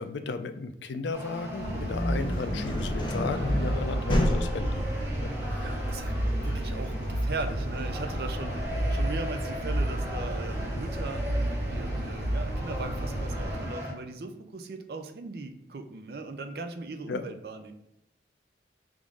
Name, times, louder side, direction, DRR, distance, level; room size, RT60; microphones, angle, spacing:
voice 1, 0.0-4.9 5.2-5.7 6.4-6.6 17.1-17.2, left 4 dB, 85° left, 9 dB, 0.4 m, -35 dB
sound 1, 1.1-13.9, equal, 15° right, 0.9 m, -40 dB
sound 2, 1.2-11.0, left 1 dB, 25° left, 0.7 m, -33 dB
sound 3, 1.6-13.6, right 1 dB, 85° right, 1.5 m, -31 dB
voice 2, 5.6-8.6 8.9-17.7, right 3 dB, 60° right, 7 dB, 0.5 m, -39 dB
3.7 x 2.6 x 4.6 m, 0.86 s
head